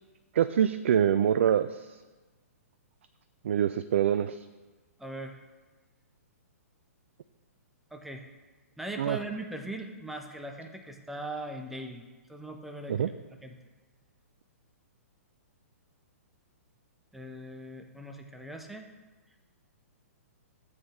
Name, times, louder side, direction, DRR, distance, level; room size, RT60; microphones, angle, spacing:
voice 1, 0.3-2.0 3.4-4.5 9.0-9.2 12.9-13.1, right 9 dB, 50° right, 12 dB, 0.4 m, -25 dB
voice 2, 5.0-5.4 7.9-8.2 8.8-13.1 13.4-13.5 17.1-18.9, right 2 dB, ahead, 4 dB, 0.8 m, -40 dB
14.0 x 8.2 x 3.0 m, 1.3 s
figure-of-eight pair, 115°, 8 cm